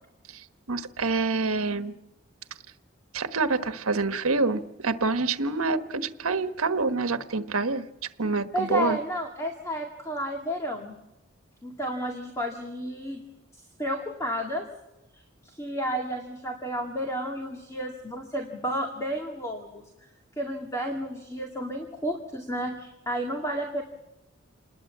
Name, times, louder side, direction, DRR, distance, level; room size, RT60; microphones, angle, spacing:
voice 1, 0.3-1.9 3.1-7.8 8.2-9.0, right 3 dB, 80° right, 9 dB, 1.4 m, -27 dB
voice 2, 8.5-11.0 11.6-13.2 13.5-14.7 15.1-19.8 20.4-23.8, equal, 15° left, 2 dB, 2.2 m, -32 dB
28.5 x 20.5 x 7.5 m, 0.94 s
head